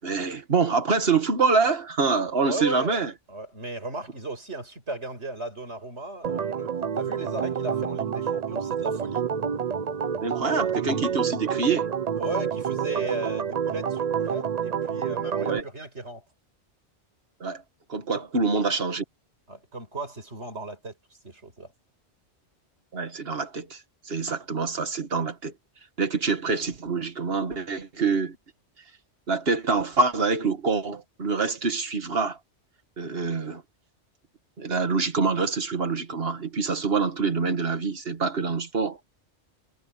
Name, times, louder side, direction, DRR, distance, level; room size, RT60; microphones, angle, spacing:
voice 1, 0.0-3.1 10.2-11.9 15.4-15.6 17.4-17.6 17.9-19.0 22.9-23.8 24.1-25.5 26.0-28.4 29.3-32.4 33.0-33.6 34.6-39.0, right 4 dB, 55° right, 2.1 m, -26 dB
voice 2, 2.4-3.0 3.3-9.2 12.2-16.2 18.1-18.2 19.5-21.7, right 2 dB, 75° right, 6.4 m, -35 dB
Organ, 6.2-15.6, right 7 dB, 40° right, 0.7 m, -28 dB
omnidirectional pair, 1.2 m